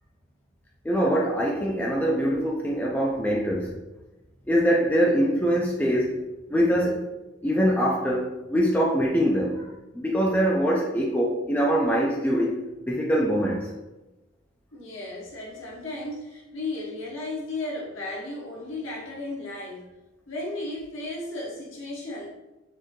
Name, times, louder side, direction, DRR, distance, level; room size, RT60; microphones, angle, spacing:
voice 1, 0.8-3.7 4.5-6.2 6.5-7.0 7.4-9.7 9.9-12.6 12.9-13.7, equal, 10° left, -3 dB, 0.3 m, -23 dB
voice 2, 14.7-19.9 20.3-22.3, left 2 dB, 75° left, -3 dB, 1.1 m, -34 dB
4.2 x 2.6 x 3.1 m, 1.0 s
head